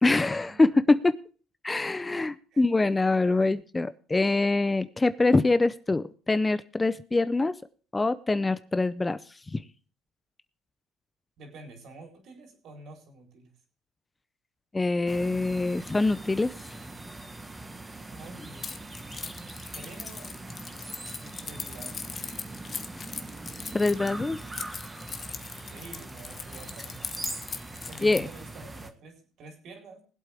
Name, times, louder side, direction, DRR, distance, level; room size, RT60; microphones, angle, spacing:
voice 1, 0.0-1.2 1.6-7.5 7.9-9.2 9.5-9.6 14.7-16.5 23.7-24.4 28.0-28.3, left 3 dB, 15° left, 14 dB, 0.6 m, -24 dB
voice 2, 2.5-3.6 11.4-13.5 18.0-18.7 19.7-20.4 21.1-22.2 24.1-24.4 25.7-27.4 27.9-30.0, right 2 dB, 60° right, 4 dB, 4.0 m, -48 dB
sound 1, 15.1-28.9, right 2 dB, 20° right, 1.5 m, -42 dB
Keys jangling, 18.6-28.4, left 5 dB, 35° left, 1.2 m, -39 dB
20.0 x 8.2 x 3.5 m, 0.39 s
supercardioid pair, 95°, 0 cm